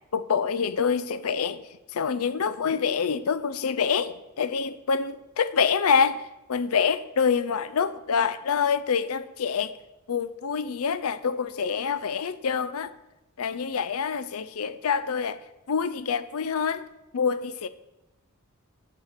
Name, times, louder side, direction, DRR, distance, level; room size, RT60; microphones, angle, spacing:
voice 1, 0.1-1.6 1.9-6.2 6.5-9.7 10.1-12.9 13.4-15.4 15.7-16.8 17.1-17.7, left 6 dB, 70° left, 15 dB, 0.5 m, -26 dB
9.1 x 5.7 x 6.6 m, 0.97 s
head